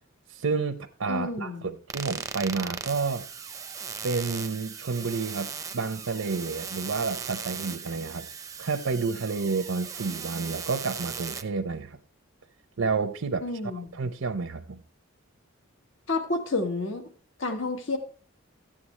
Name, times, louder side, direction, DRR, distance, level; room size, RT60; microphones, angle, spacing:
voice 1, 0.3-3.2 4.0-8.3 8.6-12.0 12.8-13.4 13.7-14.8, right 4 dB, 85° right, 0.6 m, -30 dB
voice 2, 1.1-1.7 13.4-13.9 16.1-17.0 17.4-18.0, left 3 dB, 65° left, 1.3 m, -30 dB
sound 1, 1.9-11.4, right 6 dB, 15° right, 0.5 m, -38 dB
13.0 x 8.5 x 3.2 m
head